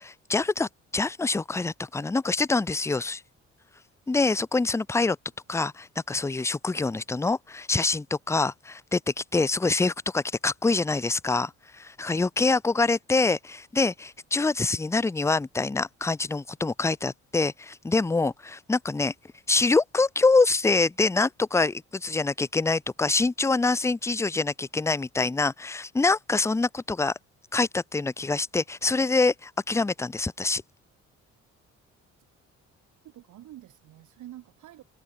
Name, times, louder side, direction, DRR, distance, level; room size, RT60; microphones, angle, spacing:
voice 1, 0.0-3.2 4.1-5.2 5.5-19.1 19.5-27.1 27.5-30.6, left 3 dB, 10° left, 0.5 m, -25 dB
voice 2, 33.0-34.8, right 14 dB, 80° right, 2.7 m, -47 dB
cardioid pair, 90°, 30 cm